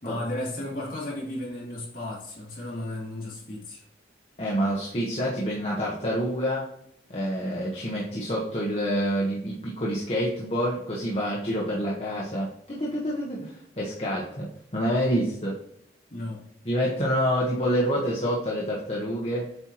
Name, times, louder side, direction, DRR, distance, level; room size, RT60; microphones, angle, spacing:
voice 1, 0.0-3.8 16.1-16.4, left 1 dB, 50° left, -5 dB, 2.6 m, -34 dB
voice 2, 4.4-6.7 7.1-14.5 14.7-15.6 16.6-19.5, equal, 35° left, -5 dB, 1.1 m, -27 dB
7.8 x 4.5 x 3.0 m, 0.74 s
head